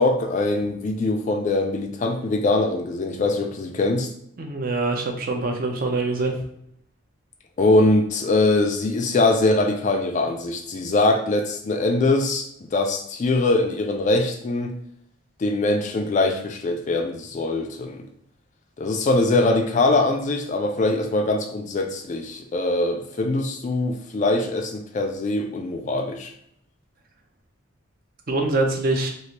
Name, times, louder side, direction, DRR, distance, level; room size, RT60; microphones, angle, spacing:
voice 1, 0.0-4.1 7.6-14.7 15.4-18.0 18.8-26.3, left 2 dB, 35° left, 4 dB, 0.3 m, -22 dB
voice 2, 4.4-6.3 28.3-29.1, right 2 dB, 40° right, 3 dB, 0.5 m, -24 dB
3.1 x 2.4 x 2.8 m, 0.69 s
head